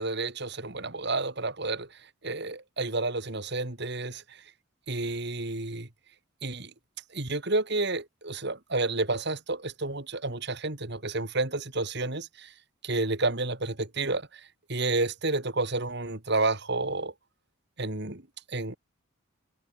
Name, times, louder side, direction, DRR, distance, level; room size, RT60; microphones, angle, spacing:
voice 1, 0.0-1.9 2.2-4.4 4.9-5.9 6.4-6.7 7.1-12.5 12.8-14.4 14.7-17.1 17.8-18.2 18.5-18.8, right 2 dB, 55° right, 2.6 m, -30 dB
head